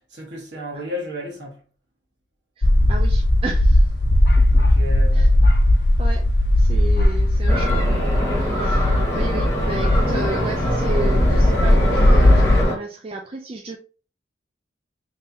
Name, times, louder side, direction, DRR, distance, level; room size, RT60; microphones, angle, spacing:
voice 1, 0.1-1.7 4.5-5.3, left 1 dB, 65° right, 1.4 m, -33 dB
sound 1, 2.6-12.6, left 1 dB, 60° left, 0.6 m, -17 dB
voice 2, 2.6-3.9 4.4-4.5 5.1-5.3 6.0-6.2 6.6-8.0 8.6-13.8, right 2 dB, 30° right, 0.3 m, -33 dB
sound 2, 7.5-12.8, equal, 15° left, 1.7 m, -24 dB
3.3 x 3.2 x 2.8 m
head